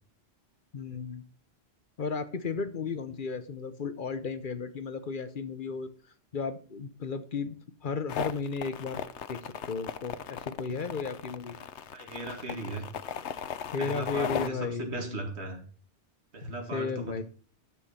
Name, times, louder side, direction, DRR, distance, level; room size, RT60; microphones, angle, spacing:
voice 1, 0.7-1.2 2.0-5.9 6.3-7.6 7.8-9.0 9.3-11.6 13.7-15.2 16.4-17.2, left 5 dB, 50° left, 12 dB, 1.0 m, -34 dB
sound 1, 8.1-14.5, left 8 dB, 85° left, 1.1 m, -36 dB
voice 2, 11.9-12.8 13.8-15.6 16.3-17.2, right 2 dB, 75° right, 2 dB, 2.4 m, -37 dB
10.5 x 6.5 x 5.7 m, 0.42 s
omnidirectional pair, 1.1 m